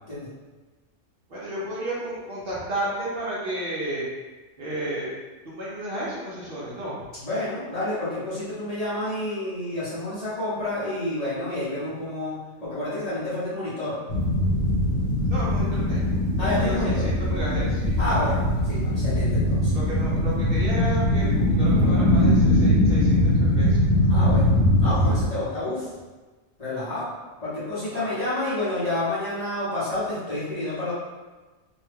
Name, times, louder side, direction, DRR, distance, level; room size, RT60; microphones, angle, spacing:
voice 1, 1.3-4.1 4.6-5.1 5.4-7.0 15.3-18.0 19.7-24.0 27.9-28.1, right 1 dB, 55° right, -8 dB, 0.8 m, -32 dB
voice 2, 7.2-14.0 16.4-17.1 18.0-19.8 24.1-25.9 26.6-27.1 27.4-30.9, left 1 dB, 35° left, -11 dB, 0.9 m, -29 dB
sound 1, 14.1-25.3, left 1 dB, 75° left, 1.1 m, -21 dB
2.7 x 2.2 x 3.3 m, 1.3 s
omnidirectional pair, 1.3 m